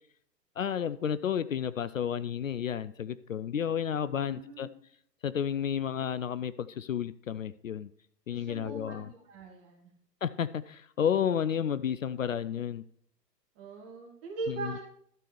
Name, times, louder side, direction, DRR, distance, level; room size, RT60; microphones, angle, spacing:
voice 1, 0.6-4.7 5.2-7.9 8.3-9.1 10.2-12.8 14.5-14.7, left 8 dB, 55° left, 16 dB, 0.5 m, -31 dB
voice 2, 4.2-4.8 8.3-9.9 13.6-14.8, right 3 dB, 10° right, 0 dB, 0.5 m, -41 dB
12.0 x 4.5 x 6.9 m, 0.64 s
figure-of-eight pair, 120°, 50 cm